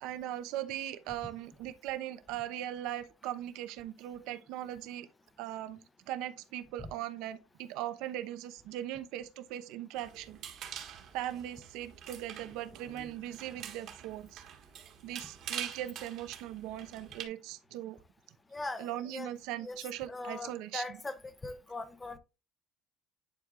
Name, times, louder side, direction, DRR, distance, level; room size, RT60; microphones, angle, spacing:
voice 1, 0.0-5.1 5.4-5.8 6.1-10.8 11.1-14.4 15.0-18.0 18.8-20.8, right 12 dB, 70° right, 0.9 m, -39 dB
sound 1, 9.9-17.2, right 9 dB, 50° right, 1.6 m, -46 dB
voice 2, 18.5-19.3 19.6-22.2, left 2 dB, 15° left, 0.7 m, -41 dB
10.5 x 4.6 x 2.5 m
cardioid pair, 145°, 0 cm